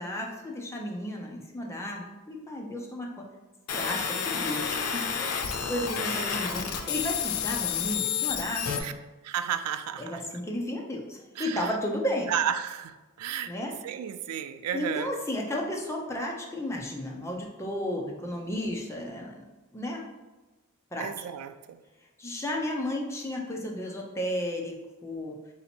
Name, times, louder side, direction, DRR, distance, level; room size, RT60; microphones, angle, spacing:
voice 1, 0.0-3.3 3.7-5.3 5.7-8.9 10.0-12.3 13.5-13.8 14.7-19.4 19.7-20.0 20.9-21.1 22.2-24.8 25.0-25.4, left 1 dB, 10° left, -1 dB, 0.5 m, -33 dB
sound 1, 3.7-8.8, left 7 dB, 90° left, 0.5 m, -30 dB
voice 2, 9.2-10.2 11.4-11.6 12.3-13.5 13.8-15.1 21.0-21.8, right 9 dB, 80° right, 11 dB, 0.3 m, -32 dB
4.1 x 2.8 x 4.3 m, 1.1 s
head